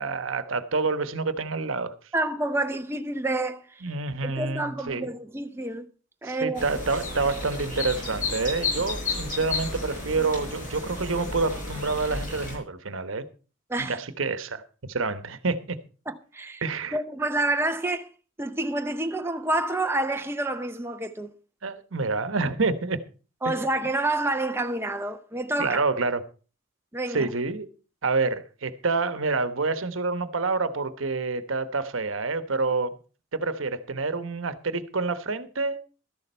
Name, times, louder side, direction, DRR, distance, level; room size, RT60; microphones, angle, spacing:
voice 1, 0.0-1.9 3.8-5.1 6.2-13.2 13.8-15.8 16.6-17.0 21.6-23.0 23.4-23.5 25.6-26.2 27.1-27.7 28.0-33.0 33.3-35.8, right 3 dB, 80° right, 1.0 m, -28 dB
voice 2, 2.1-3.9 4.2-5.9 6.2-6.6 13.7-14.0 16.1-16.6 16.9-18.1 18.4-21.3 23.4-25.8 26.9-27.3, right 2 dB, 10° right, 0.7 m, -28 dB
sound 1, 6.5-12.6, left 3 dB, 40° left, 5.5 m, -32 dB
13.0 x 11.0 x 4.4 m
head